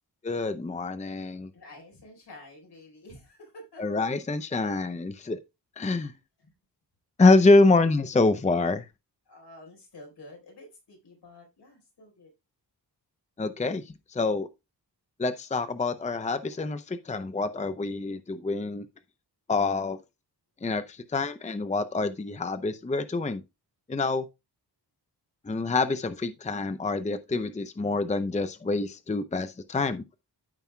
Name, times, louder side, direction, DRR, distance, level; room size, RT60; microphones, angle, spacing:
voice 1, 0.2-1.5 3.8-5.4 5.8-6.1 7.2-8.8 13.4-14.5 15.2-18.9 19.5-20.0 20.6-23.4 23.9-24.3 25.4-30.0, left 3 dB, 15° left, 0.6 m, -26 dB
voice 2, 1.5-3.8 6.0-6.5 9.3-12.3, left 1 dB, 75° left, 4.5 m, -50 dB
14.0 x 5.4 x 2.2 m
wide cardioid pair, 110°, 41 cm